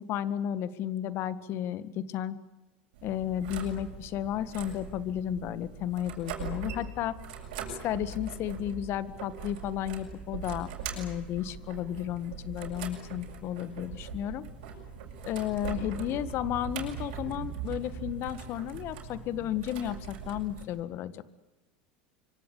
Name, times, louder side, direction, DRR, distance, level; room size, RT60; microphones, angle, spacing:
voice 1, 0.0-2.4 3.0-7.1 7.7-14.4 15.2-21.3, left 11 dB, 50° left, 15 dB, 1.8 m, -33 dB
sound 1, 2.9-20.6, right 5 dB, 70° right, 7.6 m, -41 dB
26.0 x 25.0 x 8.5 m, 1.1 s
hypercardioid pair, 90°, 5 cm